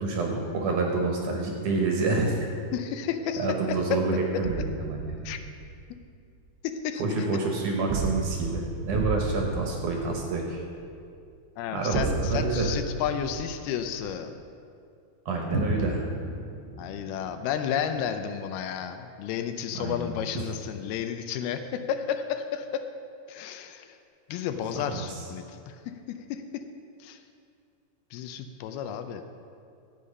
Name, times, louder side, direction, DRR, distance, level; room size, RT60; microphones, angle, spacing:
voice 1, 0.0-2.5 3.4-5.3 7.0-10.6 11.7-12.7 15.3-16.1 19.7-20.1 20.3-20.5 24.7-25.2, right 3 dB, 65° right, 1 dB, 2.3 m, -28 dB
voice 2, 2.7-4.0 5.2-5.4 6.6-7.0 11.6-14.3 16.8-22.9 23.3-24.0 24.3-26.6 27.0-27.2 28.1-29.2, left 8 dB, 80° left, 8 dB, 2.5 m, -32 dB
sound 1, 4.5-5.8 7.9-10.9 11.9-14.1, right 4 dB, 85° right, 2.8 m, -32 dB
sound 2, 15.5-19.5, equal, 30° left, 2.5 m, -36 dB
13.0 x 8.5 x 5.4 m, 2.4 s
omnidirectional pair, 4.5 m